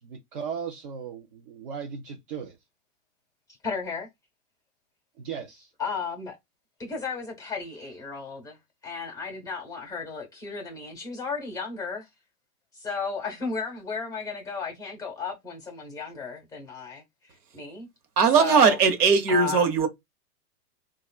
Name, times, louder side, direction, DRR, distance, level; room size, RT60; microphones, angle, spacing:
voice 1, 0.0-2.6 5.2-5.7, right 6 dB, 35° right, 0.4 m, -37 dB
voice 2, 3.6-4.1 5.8-6.4 6.8-8.6 8.8-12.1 12.7-17.9 18.4-18.8 19.3-19.7, left 5 dB, 10° left, 0.8 m, -34 dB
voice 3, 18.2-19.9, right 5 dB, 70° right, 1.0 m, -19 dB
3.2 x 2.3 x 2.2 m
hypercardioid pair, 120°, 48 cm